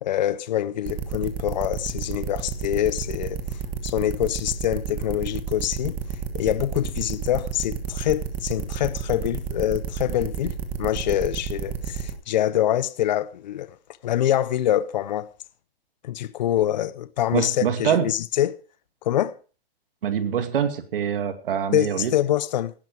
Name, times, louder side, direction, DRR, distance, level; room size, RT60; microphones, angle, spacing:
voice 1, 0.0-3.4 3.8-6.0 6.3-13.8 14.0-15.3 16.0-18.6 19.0-19.4 21.7-22.7, left 12 dB, 45° left, 0.8 m, -25 dB
sound 1, 0.9-12.1, right 8 dB, 15° right, 1.4 m, -30 dB
voice 2, 17.3-18.1 20.0-22.1, right 8 dB, 65° right, 2.4 m, -24 dB
17.0 x 10.5 x 4.6 m
hypercardioid pair, 175°, 30 cm